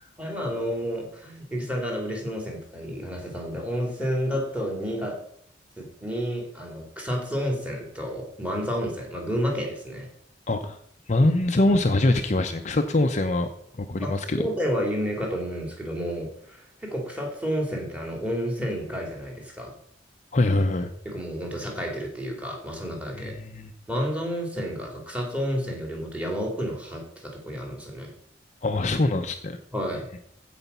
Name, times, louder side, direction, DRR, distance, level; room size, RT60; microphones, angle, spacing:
voice 1, 0.2-5.2 5.8-10.1 14.0-19.7 21.0-23.3 23.9-28.1 29.7-30.1, equal, 10° right, 0 dB, 2.8 m, -30 dB
voice 2, 10.5-10.8 11.1-13.5 13.8-14.4 20.3-20.9 23.2-23.7 28.6-29.6, left 2 dB, 40° left, 6 dB, 0.7 m, -23 dB
15.0 x 5.1 x 5.6 m, 0.68 s
head